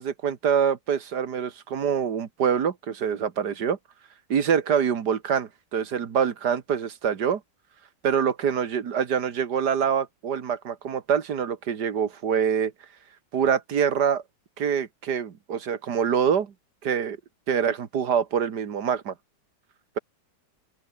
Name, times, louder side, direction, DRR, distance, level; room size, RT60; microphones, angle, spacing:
voice 1, 0.0-3.8 4.3-7.4 8.0-12.7 13.3-14.2 14.6-16.5 16.8-17.2 17.5-19.1, right 7 dB, 65° right, 2.1 m, -25 dB
open air
omnidirectional pair, 1.9 m